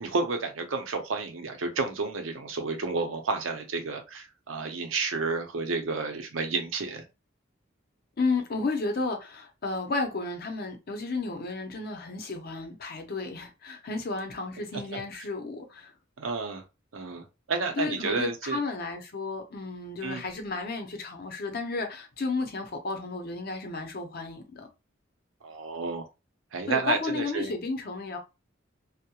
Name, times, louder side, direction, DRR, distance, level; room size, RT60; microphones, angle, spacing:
voice 1, 0.0-7.0 14.9-15.0 16.2-16.6 16.9-18.6 20.0-20.2 25.4-26.0 26.5-27.5, right 4 dB, 90° right, 0.6 m, -31 dB
voice 2, 8.2-15.9 17.8-24.7 26.7-28.2, left 3 dB, 50° left, 0.6 m, -32 dB
2.3 x 2.0 x 2.8 m
head